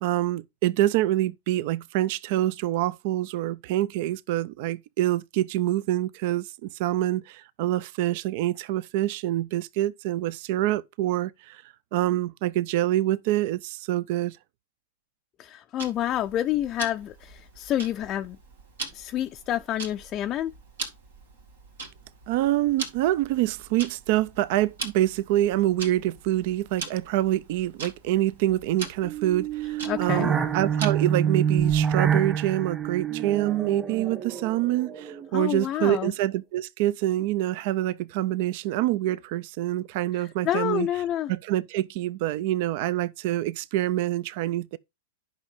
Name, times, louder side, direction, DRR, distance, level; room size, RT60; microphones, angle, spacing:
voice 1, 0.0-11.6 11.9-14.4 22.3-40.9 41.3-44.8, right 14 dB, 55° right, 0.4 m, -26 dB
voice 2, 15.4-18.4 18.9-20.5 29.8-30.3 35.3-36.1 40.1-41.3, left 12 dB, 35° left, 0.4 m, -28 dB
Tick-tock, 15.8-31.2, right 4 dB, 80° right, 2.1 m, -41 dB
sound 1, 29.0-35.4, right 8 dB, 20° right, 1.5 m, -27 dB
10.5 x 5.6 x 3.6 m
hypercardioid pair, 105°, 0 cm